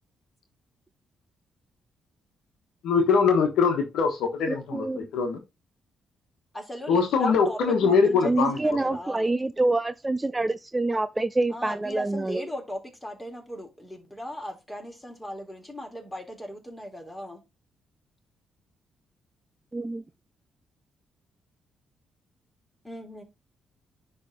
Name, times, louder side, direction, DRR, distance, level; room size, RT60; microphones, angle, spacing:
voice 1, 2.8-5.4 6.9-8.6, left 5 dB, 75° left, 1.3 m, -22 dB
voice 2, 4.5-5.0 8.2-12.5 19.7-20.0, right 2 dB, 20° right, 0.4 m, -26 dB
voice 3, 6.5-9.3 11.5-17.4 22.8-23.2, equal, 15° left, 3.4 m, -38 dB
10.5 x 3.4 x 3.8 m
hypercardioid pair, 45°, 0 cm